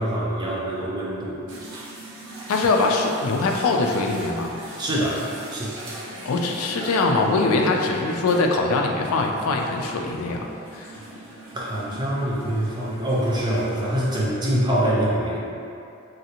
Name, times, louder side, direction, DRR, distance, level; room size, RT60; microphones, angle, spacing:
voice 1, 0.0-1.4 1.7-1.8 4.8-5.2 5.5-5.8 11.5-15.4, right 1 dB, 20° right, -6 dB, 0.4 m, -24 dB
sound 1, 1.5-14.3, right 1 dB, 80° right, 0.6 m, -41 dB
voice 2, 2.5-4.6 6.3-10.5 10.7-10.9, left 3 dB, 90° left, 2 dB, 0.3 m, -22 dB
3.2 x 2.6 x 2.8 m, 2.6 s
head